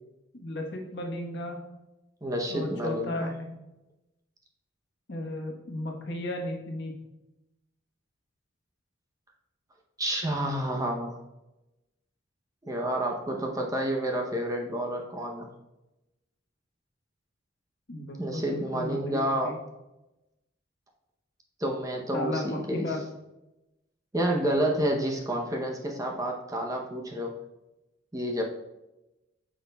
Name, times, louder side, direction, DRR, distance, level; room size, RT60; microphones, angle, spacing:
voice 1, 0.3-1.6 2.5-3.6 5.1-6.9 17.9-19.6 22.1-23.0, left 1 dB, 55° left, 1 dB, 1.1 m, -34 dB
voice 2, 2.2-3.3 10.0-11.2 12.7-15.5 18.2-19.6 21.6-22.9 24.1-27.3 28.1-28.4, right 1 dB, 15° right, 1 dB, 0.7 m, -29 dB
9.2 x 6.1 x 2.3 m, 0.97 s
head